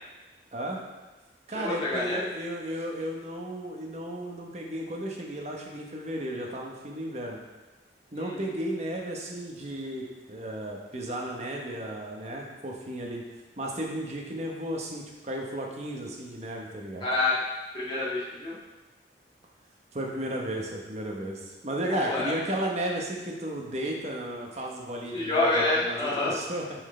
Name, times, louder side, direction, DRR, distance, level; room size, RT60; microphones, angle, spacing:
voice 1, 0.5-0.8 1.5-7.4 8.1-13.2 13.6-17.0 19.9-26.8, right 1 dB, 40° right, 0 dB, 1.0 m, -34 dB
voice 2, 1.5-2.2 8.1-8.5 17.0-17.4 17.7-18.6 21.9-22.3 25.1-26.4, left 2 dB, 25° left, -7 dB, 1.7 m, -27 dB
8.9 x 4.5 x 3.3 m, 1.1 s
head